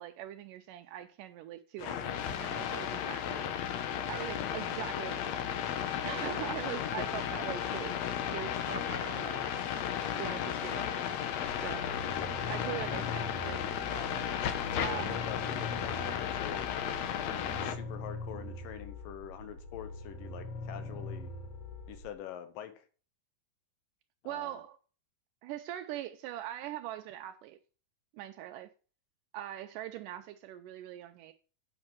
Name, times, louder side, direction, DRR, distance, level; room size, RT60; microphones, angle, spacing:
voice 1, 0.0-3.5 4.1-5.7 6.0-8.0 8.3-9.4 10.2-11.9 12.5-14.2 14.8-15.2 24.3-24.8 25.4-27.6 28.1-28.7 29.3-31.3, right 13 dB, 80° right, 2.2 m, -42 dB
sound 1, 1.8-17.8, left 9 dB, 65° left, 1.9 m, -34 dB
voice 2, 6.7-7.1 12.1-12.4 14.7-16.7 17.3-21.3 21.9-22.9 24.2-24.6, left 11 dB, 85° left, 2.6 m, -44 dB
sound 2, 11.5-22.1, left 2 dB, 50° left, 2.9 m, -43 dB
8.9 x 6.4 x 5.9 m
omnidirectional pair, 3.8 m